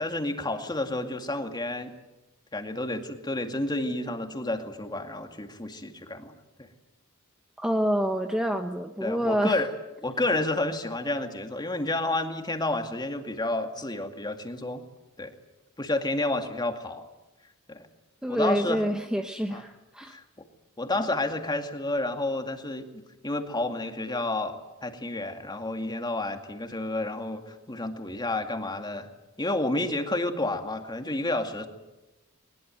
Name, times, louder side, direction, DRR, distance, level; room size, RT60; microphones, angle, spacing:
voice 1, 0.0-1.9 2.5-6.3 6.6-6.7 9.0-9.7 10.0-14.8 15.2-15.3 15.8-17.0 17.7-17.9 18.3-19.0 19.5-19.6 20.1-20.2 20.8-22.9 23.2-29.1 29.4-31.7, left 2 dB, 20° left, 5 dB, 2.2 m, -30 dB
voice 2, 7.6-9.6 18.2-20.2, equal, 5° right, 5 dB, 1.0 m, -27 dB
21.5 x 21.0 x 9.2 m, 1.0 s
head